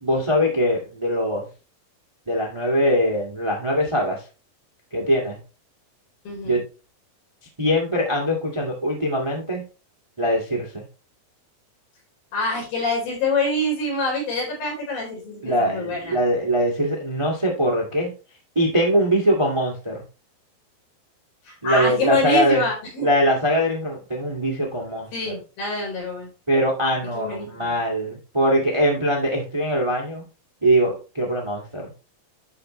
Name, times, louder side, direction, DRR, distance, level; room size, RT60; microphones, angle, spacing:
voice 1, 0.0-1.5 2.3-4.2 4.9-5.4 6.4-6.6 7.6-9.6 10.2-10.8 15.4-18.1 18.5-20.0 21.6-22.6 23.0-25.3 26.5-30.2 30.6-31.9, equal, 20° right, -1 dB, 0.8 m, -22 dB
voice 2, 6.2-6.6 12.3-16.2 21.5-23.1 25.1-26.3 27.1-27.7, left 2 dB, 70° left, -3 dB, 6.1 m, -25 dB
12.0 x 5.0 x 3.2 m, 0.33 s
omnidirectional pair, 4.3 m